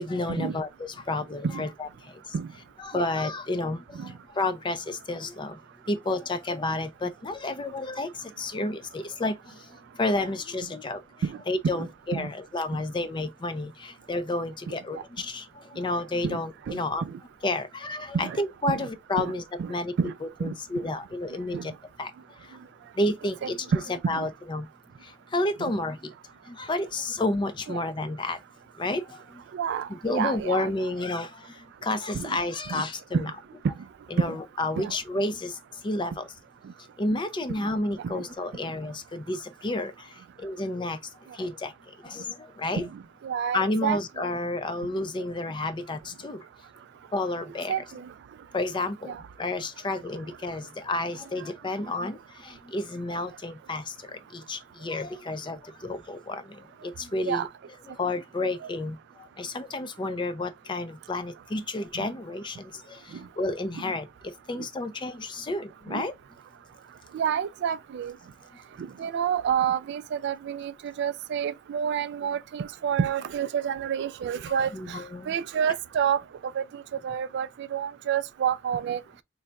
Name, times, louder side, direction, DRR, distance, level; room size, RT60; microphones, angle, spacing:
voice 1, 0.0-2.3 2.8-5.6 5.9-11.1 11.5-17.0 17.4-19.9 20.2-22.6 22.9-24.7 25.0-26.1 26.4-28.4 28.8-29.4 29.9-33.3 34.1-36.3 37.0-42.9 43.5-46.5 47.1-47.8 48.5-57.5 57.9-66.1 74.5-75.4, left 2 dB, 25° left, 0.4 m, -31 dB
voice 2, 11.6-12.3 14.7-15.0 16.2-16.4 16.7-17.2 18.1-18.4 18.7-18.9 19.2-19.3 19.6-19.7 20.0-20.1 20.4-20.5 21.5-21.7 23.7-24.3 27.7-27.8 29.5-30.7 32.1-32.4 32.7-32.8 33.1-33.3 34.2-34.4 34.7-34.9 37.6-37.7 38.0-38.2 42.8-44.3 47.7-48.1 49.0-49.2 57.3-57.5 63.1-63.2 65.9-66.0 67.1-68.1 68.8-76.2 76.5-79.0, right 7 dB, 55° right, 0.3 m, -29 dB
3.3 x 2.3 x 3.9 m
head